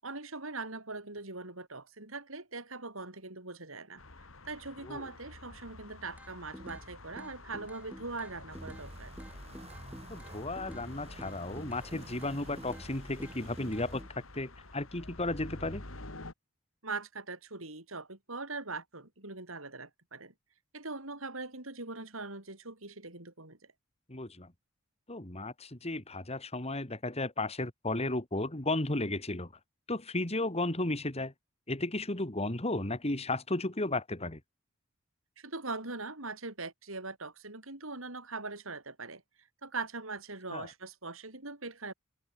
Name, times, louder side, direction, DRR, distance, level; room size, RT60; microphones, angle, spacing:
voice 1, 0.0-4.0 4.4-9.1 16.8-20.3 20.7-23.6 35.4-39.2 39.6-41.9, right 3 dB, 75° right, 6.5 m, -41 dB
sound 1, 4.0-16.3, left 2 dB, 75° left, 3.5 m, -49 dB
sound 2, 6.2-6.9 7.2-8.9 9.2-10.9 11.2-12.9 13.2-14.1, equal, 5° right, 1.2 m, -49 dB
sound 3, 8.5-14.0, right 1 dB, 30° right, 1.7 m, -49 dB
voice 2, 10.1-14.0 14.3-15.8 24.1-24.5 25.1-29.5 29.9-31.3 31.7-34.4 40.5-40.7, left 2 dB, 30° left, 2.8 m, -34 dB
head